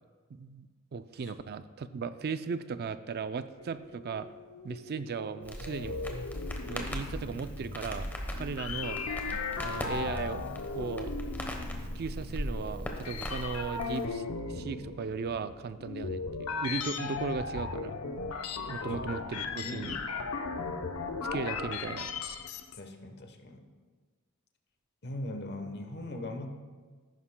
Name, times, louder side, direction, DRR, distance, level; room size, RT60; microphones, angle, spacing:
voice 1, 0.3-0.7 0.9-4.3 4.6-6.0 6.7-9.0 9.6-10.4 10.7-11.1 11.8-18.0 18.7-20.0 21.3-22.1, right 5 dB, 45° right, 12 dB, 0.4 m, -37 dB
sound 1, 3.6-22.8, left 4 dB, 90° left, 0.7 m, -37 dB
Crackle, 5.4-14.1, equal, 10° left, 1.0 m, -39 dB
voice 2, 19.3-20.0 22.7-23.7 25.0-26.5, left 1 dB, 50° left, 5 dB, 1.0 m, -40 dB
14.0 x 11.0 x 2.2 m, 1.5 s
head